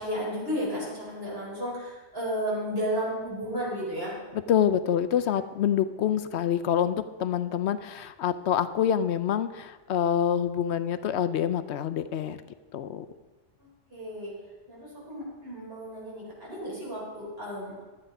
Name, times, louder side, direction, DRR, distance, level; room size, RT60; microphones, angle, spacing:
voice 1, 0.0-4.1 5.3-5.4 13.6-14.3 14.7-17.7, equal, 60° right, -5 dB, 4.4 m, -33 dB
voice 2, 4.5-12.4 12.7-13.1, left 9 dB, 75° left, 12 dB, 0.9 m, -26 dB
11.5 x 8.7 x 5.4 m, 1.2 s
omnidirectional pair, 1.2 m